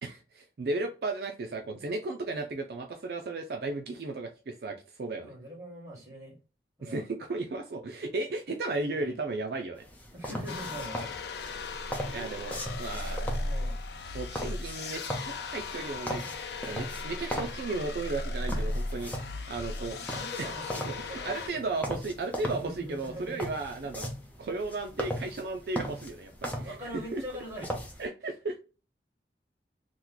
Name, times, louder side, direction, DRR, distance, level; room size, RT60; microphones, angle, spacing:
voice 1, 0.0-5.3 6.8-9.8 12.1-13.2 14.1-16.2 16.7-19.1 19.5-20.0 20.4-20.5 20.9-21.0 21.3-24.1 24.4-27.2 28.0-28.6, right 3 dB, 60° right, 0.4 m, -35 dB
voice 2, 5.2-6.4 6.8-7.0 8.9-9.1 10.1-11.7 12.0-12.4 12.9-13.8 19.7-21.7 22.4-23.4 24.9-25.1 26.6-27.8, equal, 20° right, 1.5 m, -43 dB
sound 1, 9.8-28.1, equal, 10° left, 0.5 m, -39 dB
sound 2, 10.5-21.5, left 2 dB, 70° left, 0.5 m, -36 dB
3.0 x 2.1 x 3.7 m
head